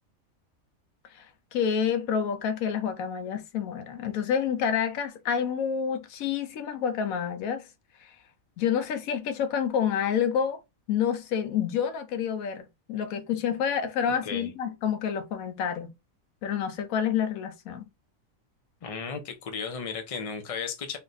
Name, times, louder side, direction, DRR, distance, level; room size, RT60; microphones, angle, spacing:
voice 1, 1.5-7.7 8.0-8.1 8.6-10.6 10.9-15.9 16.4-17.9, left 8 dB, 80° left, 1.1 m, -28 dB
voice 2, 18.8-21.0, left 6 dB, 45° left, 0.5 m, -34 dB
3.1 x 2.2 x 3.9 m
omnidirectional pair, 1.4 m